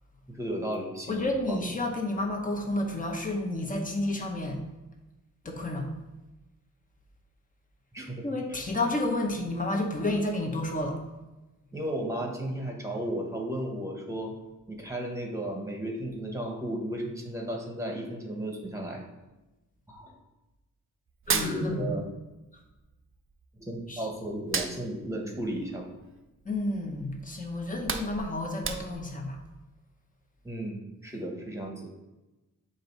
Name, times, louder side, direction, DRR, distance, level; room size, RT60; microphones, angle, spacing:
voice 1, 0.3-1.6 7.9-8.2 11.7-14.3 14.7-19.0 19.9-20.2 21.3-22.1 23.5-25.9 30.4-31.9, right 1 dB, 10° right, 1 dB, 1.2 m, -34 dB
voice 2, 1.1-4.6 5.4-5.9 8.2-11.0 21.3-21.9 23.9-24.1 26.4-29.4, left 2 dB, 25° left, 2 dB, 1.0 m, -30 dB
Hands, 21.1-22.4 22.6-23.9 24.3-26.7 27.1-27.2 27.6-29.2, right 5 dB, 40° right, 0.5 m, -34 dB
7.6 x 2.8 x 5.4 m, 1.1 s
wide cardioid pair, 130°, 33 cm